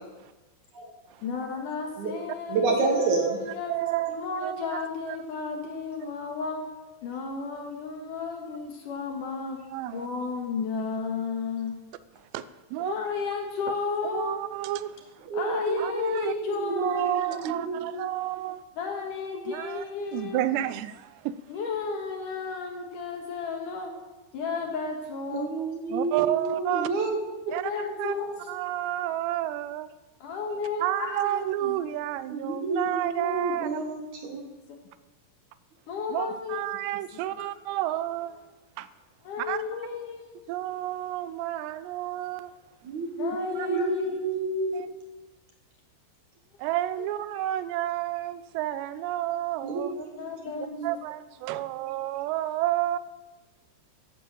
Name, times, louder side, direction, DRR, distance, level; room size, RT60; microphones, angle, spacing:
voice 1, 1.2-3.8 4.1-6.6 7.0-9.6 9.9-11.8 12.8-14.5 15.3-17.4 18.8-20.5 21.5-23.9 24.3-25.6 27.6-28.4 30.2-31.8 32.9-33.0 34.3-34.9 35.9-36.6 39.2-40.5 43.2-44.2 47.0-47.2 50.2-50.7, left 5 dB, 60° left, 2.7 m, -33 dB
voice 2, 2.5-3.4 15.2-15.9 16.5-18.0 25.3-28.1 32.3-34.4 42.8-44.8 49.6-50.9, right 3 dB, 60° right, 2.2 m, -30 dB
voice 3, 3.7-4.5 5.1-5.2 9.7-10.1 12.2-12.9 13.7-13.8 14.1-15.3 15.8-16.3 16.8-18.6 19.5-19.8 20.1-21.4 25.9-26.9 27.5-27.7 28.0-28.1 28.5-29.9 30.8-33.8 36.1-38.4 38.8-38.9 39.4-39.6 40.5-42.5 43.6-43.7 44.7-44.9 46.6-50.0 50.8-53.0, right 14 dB, 90° right, 2.9 m, -30 dB
12.5 x 11.0 x 7.5 m
omnidirectional pair, 4.9 m